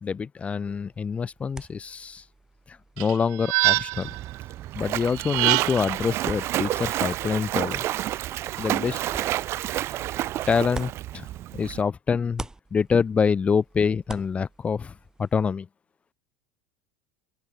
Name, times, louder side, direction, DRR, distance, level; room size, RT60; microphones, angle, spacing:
voice 1, 0.0-2.2 2.7-4.1 4.7-7.8 8.6-9.0 10.5-11.3 11.5-14.9 15.2-15.7, left 6 dB, 20° left, 0.5 m, -26 dB
sound 1, 0.7-11.8 12.1-15.5, right 2 dB, 10° right, 4.5 m, -46 dB
sound 2, 3.0-4.2 5.1-6.0, right 30 dB, 60° right, 2.0 m, -24 dB
Splash splatter, 3.9-11.8, right 14 dB, 45° right, 1.3 m, -30 dB
open air
supercardioid pair, 120°, 6 cm